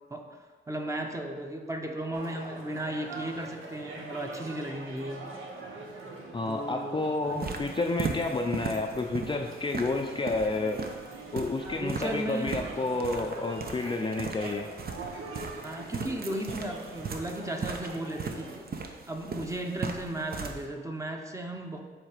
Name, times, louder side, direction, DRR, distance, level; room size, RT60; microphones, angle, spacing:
voice 1, 0.1-5.3 6.5-7.0 7.3-7.6 11.8-12.6 15.6-21.8, right 1 dB, 15° right, 3 dB, 0.8 m, -35 dB
sound 1, 2.1-18.6, right 3 dB, 80° right, 1.0 m, -44 dB
voice 2, 6.3-10.8 11.3-14.7, left 3 dB, 25° left, 3 dB, 0.5 m, -30 dB
sound 2, 7.2-20.6, right 4 dB, 50° right, 0.7 m, -38 dB
7.2 x 3.3 x 5.0 m, 1.4 s
cardioid pair, 75°, 20 cm